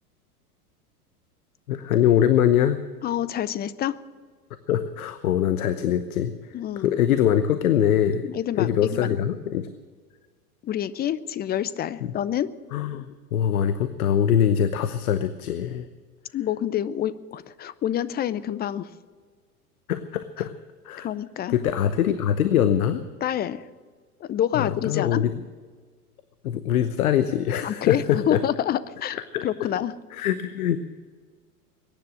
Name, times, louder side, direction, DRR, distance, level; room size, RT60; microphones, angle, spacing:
voice 1, 1.7-2.8 4.7-8.3 8.5-9.7 12.0-12.1 12.7-15.9 19.9-20.5 20.8-21.1 21.5-23.0 24.5-25.3 26.4-28.4 29.3-29.5 30.1-30.8, left 10 dB, 70° left, 12 dB, 1.0 m, -23 dB
voice 2, 3.0-4.0 6.5-6.9 8.3-9.2 10.6-12.5 16.3-18.9 21.0-21.6 23.2-23.7 24.2-25.2 27.6-29.2 29.4-29.9, left 10 dB, 20° left, 17 dB, 0.6 m, -27 dB
22.0 x 10.5 x 6.3 m, 1.6 s
figure-of-eight pair, 90°, 46 cm